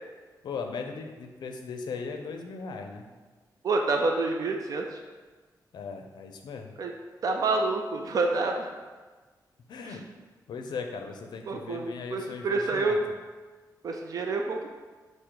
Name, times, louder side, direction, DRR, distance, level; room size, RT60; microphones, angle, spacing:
voice 1, 0.4-3.1 5.7-6.7 9.7-10.0 10.5-13.0, left 5 dB, 80° left, 4 dB, 0.4 m, -38 dB
voice 2, 3.6-5.0 6.8-6.9 7.2-8.8 9.8-10.0 11.5-13.0 13.8-14.7, right 3 dB, 55° right, 2 dB, 0.3 m, -28 dB
5.0 x 2.1 x 4.5 m, 1.4 s
wide cardioid pair, 155°, 7 cm